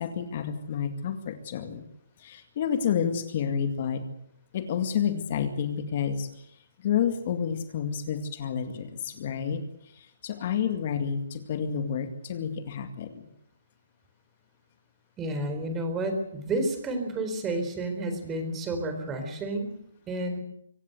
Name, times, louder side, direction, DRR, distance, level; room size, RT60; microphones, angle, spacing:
voice 1, 0.0-1.9 2.2-4.0 4.5-13.3, left 8 dB, 40° left, 8 dB, 2.2 m, -30 dB
voice 2, 15.2-19.7 20.1-20.4, right 2 dB, 15° right, 7 dB, 4.0 m, -30 dB
25.0 x 17.0 x 7.9 m, 0.77 s
hypercardioid pair, 160°, 0 cm